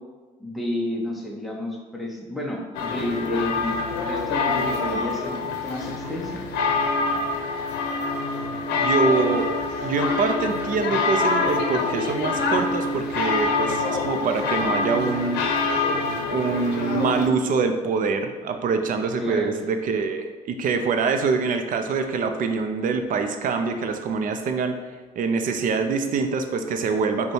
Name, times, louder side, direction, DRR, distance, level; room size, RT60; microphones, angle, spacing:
voice 1, 0.4-6.4 19.2-19.6, left 1 dB, ahead, -1 dB, 0.7 m, -30 dB
sound 1, 2.7-17.3, left 3 dB, 85° left, 0.6 m, -25 dB
voice 2, 8.8-9.5 9.8-15.4 16.3-24.8 25.2-27.3, right 4 dB, 55° right, 7 dB, 0.5 m, -24 dB
5.1 x 2.3 x 4.6 m, 1.4 s
cardioid pair, 110°, 17 cm